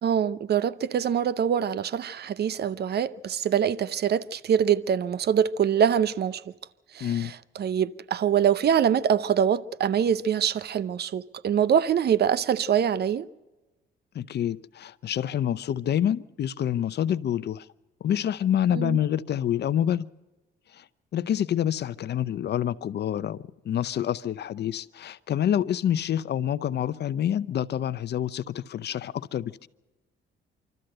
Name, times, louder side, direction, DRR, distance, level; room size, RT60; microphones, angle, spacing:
voice 1, 0.0-6.4 6.9-13.3 18.7-19.0, right 8 dB, 55° right, 0.7 m, -24 dB
voice 2, 7.0-7.3 14.1-17.7 18.0-20.1 20.7-20.8 21.1-29.7, left 10 dB, 55° left, 0.7 m, -27 dB
26.0 x 13.5 x 7.8 m
cardioid pair, 90°, 20 cm